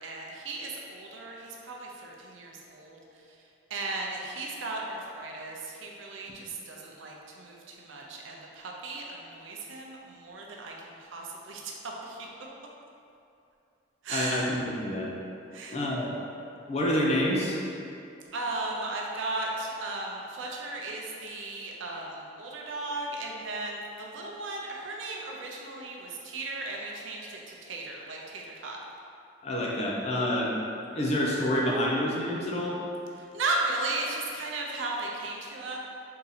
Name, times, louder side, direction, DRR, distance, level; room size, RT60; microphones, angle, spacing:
voice 1, 0.0-3.0 3.7-12.3 14.0-14.5 15.5-15.8 18.3-28.8 33.2-35.8, right 2 dB, 75° right, -1 dB, 0.6 m, -36 dB
voice 2, 14.1-15.1 15.7-16.1 16.7-17.6 29.4-30.5 30.9-32.8, left 1 dB, 35° left, -3 dB, 0.5 m, -27 dB
3.7 x 2.8 x 4.0 m, 2.6 s
head